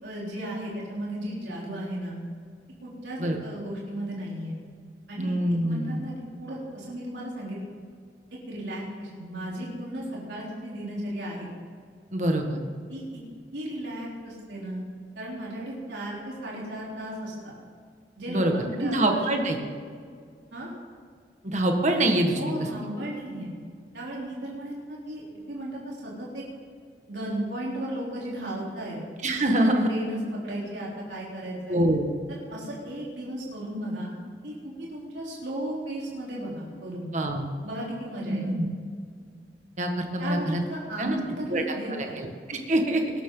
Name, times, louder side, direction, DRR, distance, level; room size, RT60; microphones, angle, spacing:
voice 1, 0.0-2.2 2.8-4.6 5.1-5.4 5.6-7.6 8.5-11.5 12.9-13.0 13.5-14.8 15.2-17.5 18.2-19.5 20.5-20.7 22.4-23.5 23.9-26.4 27.1-29.0 29.6-31.8 32.3-34.2 34.4-37.1 37.6-38.4 40.2-42.2, right 1 dB, 80° right, -5 dB, 3.7 m, -35 dB
voice 2, 5.2-6.0 12.1-12.6 18.3-18.5 18.8-19.6 21.4-22.4 29.2-29.9 31.7-32.1 37.1-37.4 38.3-38.7 39.8-40.6 41.0-41.2 41.5-41.6 42.0-43.0, right 1 dB, 40° right, 3 dB, 1.6 m, -25 dB
20.5 x 12.0 x 3.9 m, 2.1 s
head